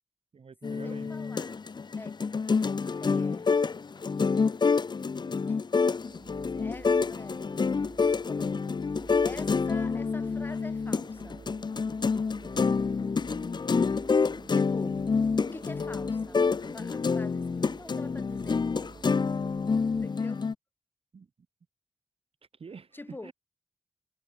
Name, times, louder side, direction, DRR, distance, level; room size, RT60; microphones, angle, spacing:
voice 1, 0.3-1.1 21.1-21.3 22.6-23.3, right 5 dB, 65° right, 3.4 m, -47 dB
sound 1, 0.6-20.5, left 5 dB, 45° left, 0.7 m, -28 dB
voice 2, 0.8-2.3 3.0-3.5 5.5-5.6 6.5-7.4 8.3-8.8 9.2-11.4 14.5-15.0 15.4-18.8 20.0-20.4 22.9-23.3, left 2 dB, 20° left, 1.8 m, -46 dB
sound 2, 5.7-20.1, right 4 dB, 40° right, 4.8 m, -49 dB
wide cardioid pair, 130°, 11 cm